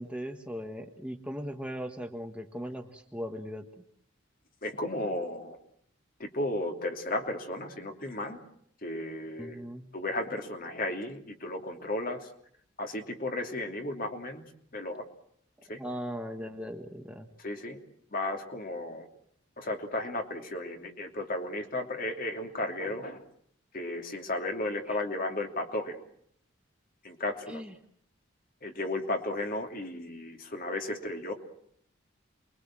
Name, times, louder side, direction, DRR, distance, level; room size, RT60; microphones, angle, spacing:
voice 1, 0.0-3.7 9.4-9.9 15.8-17.3 24.9-25.0 27.5-27.7, equal, 5° right, 4 dB, 1.5 m, -38 dB
voice 2, 4.6-5.6 6.2-8.4 8.8-9.5 9.9-12.3 12.8-14.4 14.7-15.0 15.7-15.8 17.4-17.8 18.1-19.1 19.6-23.2 23.7-26.0 27.0-27.6 28.6-31.3, left 2 dB, 45° left, 4 dB, 2.9 m, -34 dB
28.5 x 22.5 x 7.6 m, 0.66 s
head